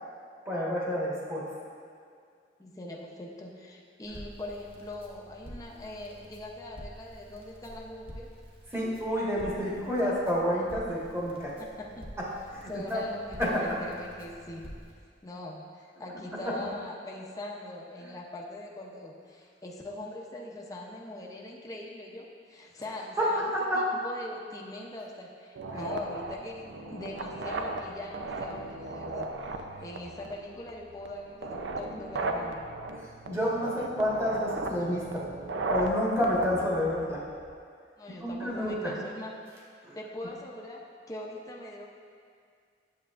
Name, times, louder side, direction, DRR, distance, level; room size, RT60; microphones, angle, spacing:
voice 1, 0.4-1.4 8.7-11.6 12.2-12.3 12.5-13.0 13.4-13.8 16.4-16.5 18.0-18.1 23.2-23.9 25.7-25.8 33.0-35.3 35.7-37.2 38.2-38.9 39.8-40.0, equal, 15° right, -6 dB, 1.5 m, -29 dB
voice 2, 2.6-8.3 11.6-12.1 12.7-14.7 15.2-29.3 29.5-32.7 38.0-39.3 39.9-40.8 41.1-41.9, left 1 dB, 20° left, -2 dB, 0.6 m, -42 dB
Crackle, 4.0-14.9, equal, 30° right, 1.0 m, -48 dB
sound 1, 25.6-37.5, right 2 dB, 80° right, 0.5 m, -36 dB
9.1 x 7.5 x 2.5 m, 2.2 s
head